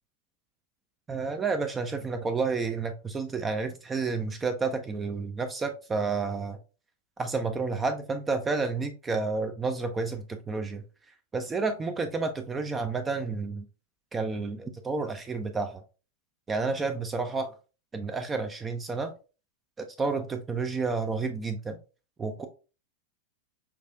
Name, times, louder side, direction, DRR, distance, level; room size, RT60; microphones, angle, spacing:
voice 1, 1.1-6.6 7.2-10.8 11.3-13.7 14.1-15.8 16.5-17.5 17.9-19.1 19.8-21.8 22.2-22.5, right 4 dB, 15° right, 7 dB, 0.3 m, -30 dB
5.8 x 2.4 x 2.3 m, 0.33 s
figure-of-eight pair, 90°, 0 cm